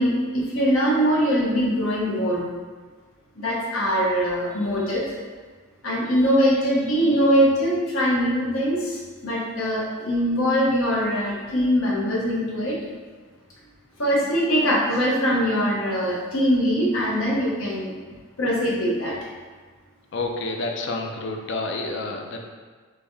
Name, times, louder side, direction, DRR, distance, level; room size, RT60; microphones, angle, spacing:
voice 1, 0.0-2.4 3.4-5.0 5.8-12.8 14.0-18.0 18.4-19.2, equal, 80° left, -4 dB, 0.8 m, -22 dB
voice 2, 20.1-22.4, left 2 dB, 60° left, 2 dB, 0.4 m, -29 dB
3.3 x 2.6 x 3.4 m, 1.5 s
head